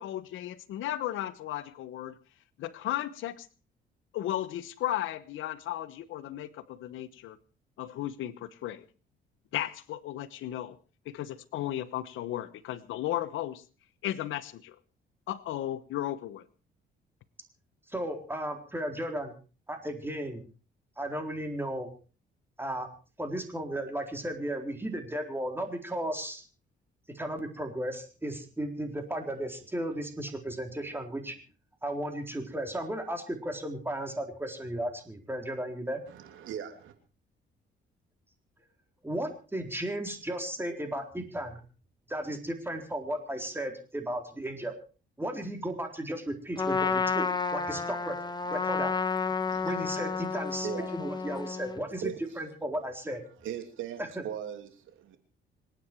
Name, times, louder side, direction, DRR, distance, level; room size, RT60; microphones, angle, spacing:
voice 1, 0.0-2.2 2.6-3.5 4.1-7.4 7.8-8.8 9.5-10.8 11.0-13.6 14.0-14.8 15.3-16.4, left 13 dB, 85° left, 14 dB, 1.1 m, -35 dB
voice 2, 17.9-19.3 19.7-20.5 21.0-21.9 22.6-22.9 23.2-26.4 27.1-31.4 31.8-36.0 39.0-41.6 42.1-44.7 45.2-48.2 48.5-48.9 49.6-50.7 50.9-53.2 54.0-54.2, right 1 dB, 10° right, 4 dB, 4.1 m, -35 dB
voice 3, 36.1-36.9 49.4-49.8 50.1-50.2 50.6-50.9 51.3-51.4 52.0-52.4 53.4-55.2, right 9 dB, 85° right, 7 dB, 2.9 m, -39 dB
Trumpet, 46.6-51.8, left 5 dB, 20° left, 1.4 m, -31 dB
27.0 x 9.4 x 4.6 m, 0.36 s
cardioid pair, 90°, 20 cm